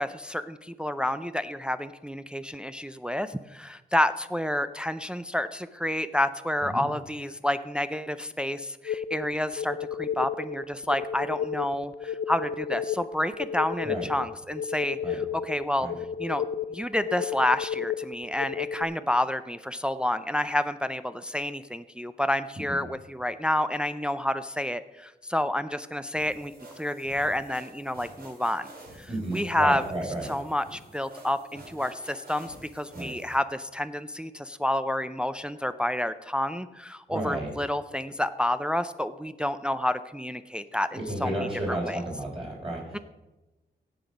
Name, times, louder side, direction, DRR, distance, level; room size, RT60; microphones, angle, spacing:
voice 1, 0.0-15.9 16.2-16.4 16.7-28.7 29.0-29.8 30.3-42.0 42.9-43.0, left 1 dB, 5° right, 11 dB, 0.4 m, -29 dB
sound 1, 8.9-18.8, left 7 dB, 80° left, 0.5 m, -33 dB
sound 2, 26.1-33.4, right 1 dB, 55° right, 4.2 m, -49 dB
voice 2, 29.1-30.3 32.9-33.1 37.1-37.5 41.1-43.0, right 1 dB, 30° right, -4 dB, 4.0 m, -32 dB
16.5 x 5.9 x 5.2 m, 1.1 s
wide cardioid pair, 100°, 18 cm